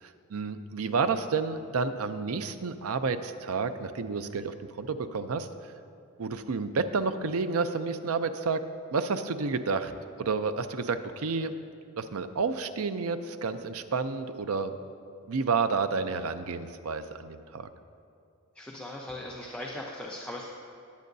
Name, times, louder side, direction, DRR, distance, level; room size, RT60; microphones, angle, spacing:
voice 1, 0.0-5.5 6.2-8.6 8.9-9.9 10.2-11.5 11.9-14.7 15.3-17.7, right 4 dB, 70° right, 10 dB, 0.5 m, -30 dB
voice 2, 18.5-20.5, left 1 dB, 5° left, -3 dB, 0.7 m, -39 dB
19.5 x 8.4 x 2.7 m, 2.5 s
head